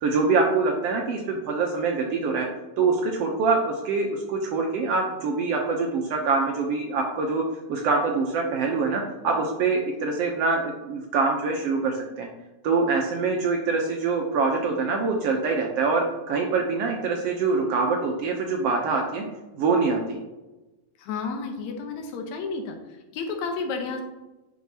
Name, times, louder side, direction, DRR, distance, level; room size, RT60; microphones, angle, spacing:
voice 1, 0.0-2.5 2.8-7.4 7.7-12.3 12.6-19.3 19.5-20.2, right 4 dB, 75° right, 1 dB, 1.5 m, -24 dB
voice 2, 21.0-24.0, left 4 dB, 75° left, 4 dB, 2.1 m, -32 dB
9.3 x 5.1 x 2.8 m, 1.1 s
omnidirectional pair, 3.3 m